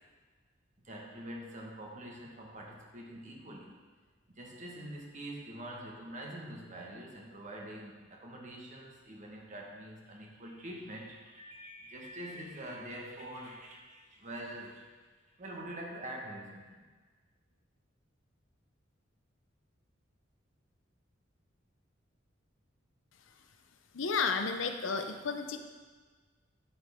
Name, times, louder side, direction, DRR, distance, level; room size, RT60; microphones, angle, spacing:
voice 1, 0.8-3.8 4.3-14.9 15.4-16.9, right 1 dB, 40° right, -1 dB, 1.5 m, -45 dB
voice 2, 23.9-25.6, left 5 dB, 80° left, 6 dB, 0.7 m, -32 dB
10.5 x 7.1 x 3.7 m, 1.4 s
head